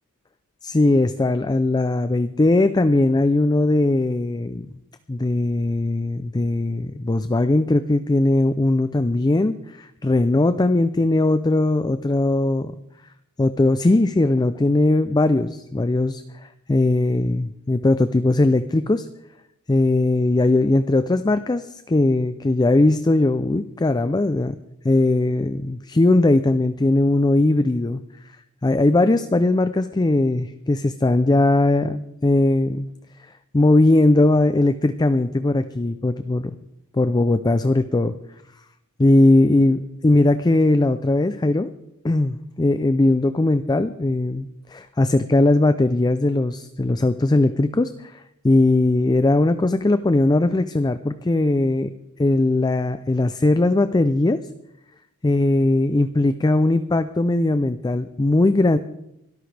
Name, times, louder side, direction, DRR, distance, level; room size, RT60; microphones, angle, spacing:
voice 1, 0.6-4.7 5.1-12.8 13.4-19.1 19.7-24.6 24.8-28.0 28.6-32.9 33.5-36.5 36.9-38.1 39.0-41.7 42.0-51.9 52.2-54.4 55.2-58.8, left 2 dB, 20° left, 11 dB, 0.4 m, -19 dB
23.0 x 13.0 x 3.4 m, 0.81 s
head